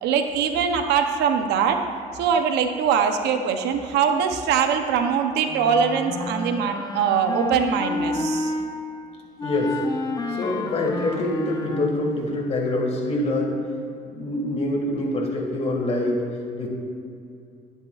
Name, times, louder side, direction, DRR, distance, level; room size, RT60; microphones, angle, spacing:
voice 1, 0.0-1.8 2.1-8.5, right 7 dB, 80° right, 6 dB, 0.7 m, -22 dB
Wind instrument woodwind instrument, 5.5-8.7 9.4-12.1, left 2 dB, 20° left, 0.6 m, -30 dB
voice 2, 9.4-9.8 10.3-13.6 14.1-16.7, left 1 dB, 40° left, -1 dB, 1.9 m, -25 dB
10.5 x 10.5 x 2.4 m, 2.5 s
cardioid pair, 110°, 17 cm